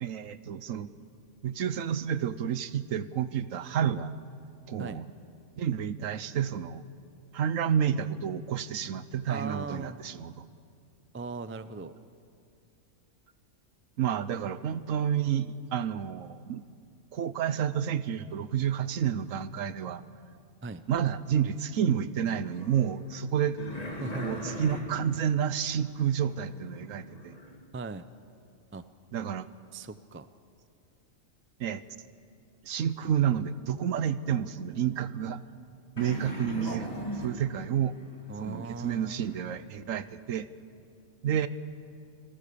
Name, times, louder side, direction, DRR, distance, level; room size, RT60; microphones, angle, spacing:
voice 1, 0.0-0.9 1.4-4.1 4.7-5.1 5.6-6.8 7.3-10.4 14.0-16.6 17.1-20.0 20.9-23.6 24.2-27.4 29.1-29.5 31.6-31.8 32.6-35.4 36.0-37.9 38.4-40.5 41.2-41.5, right 8 dB, 80° right, 14 dB, 1.2 m, -30 dB
voice 2, 9.3-10.0 11.1-11.9 20.6-20.8 24.0-24.5 27.7-28.1 28.7-28.8 29.7-30.3 38.3-39.2, right 3 dB, 20° right, 13 dB, 0.3 m, -38 dB
sound 1, 22.4-27.5 36.0-39.6, equal, 30° left, 2.5 m, -40 dB
28.5 x 18.5 x 6.9 m, 2.4 s
omnidirectional pair, 1.4 m